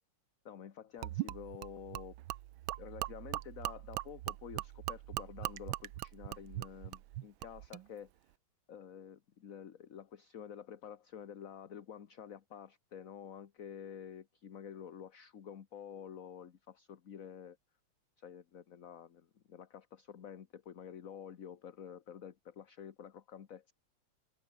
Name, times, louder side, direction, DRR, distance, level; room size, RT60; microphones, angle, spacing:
voice 1, 0.4-2.2 2.8-8.1 8.7-17.6 18.2-23.7, left 8 dB, 45° left, 1.4 m, -49 dB
Gurgling / Liquid, 1.0-7.8, right 15 dB, 75° right, 1.4 m, -41 dB
omnidirectional pair, 2.4 m